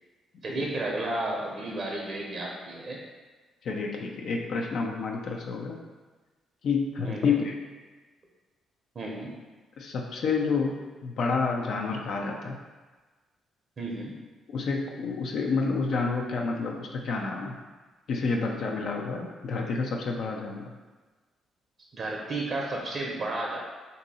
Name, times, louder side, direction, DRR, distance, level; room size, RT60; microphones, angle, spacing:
voice 1, 0.4-3.0 7.0-7.4 9.0-9.3 13.8-14.1 21.9-23.6, right 2 dB, 45° right, -2 dB, 0.6 m, -32 dB
voice 2, 3.6-5.8 6.6-7.6 9.8-12.6 14.5-17.5 18.1-20.7, left 4 dB, 65° left, 1 dB, 0.4 m, -29 dB
2.7 x 2.7 x 4.0 m, 1.3 s
cardioid pair, 90°, 0 cm